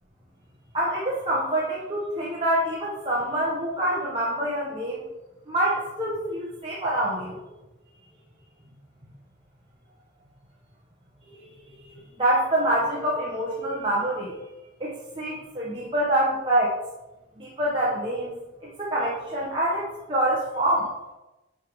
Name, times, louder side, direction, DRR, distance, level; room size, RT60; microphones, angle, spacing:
voice 1, 0.7-5.0 5.5-7.4 11.3-11.4 11.8-14.4 14.8-16.7 17.4-18.3 18.6-20.9, right 1 dB, 25° right, -6 dB, 1.0 m, -26 dB
9.1 x 3.5 x 4.7 m, 1.0 s
head